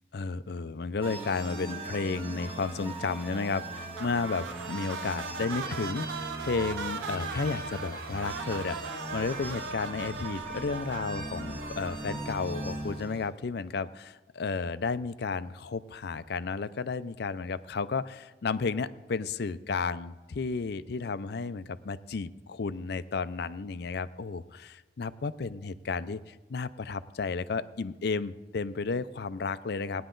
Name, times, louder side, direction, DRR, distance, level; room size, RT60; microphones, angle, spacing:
voice 1, 0.1-30.0, left 4 dB, 60° left, 14 dB, 0.5 m, -33 dB
sound 1, 1.0-13.3, right 2 dB, 30° right, 1.5 m, -39 dB
sound 2, 4.0-12.4, right 4 dB, 85° right, 0.6 m, -39 dB
17.5 x 10.0 x 3.9 m, 1.2 s
head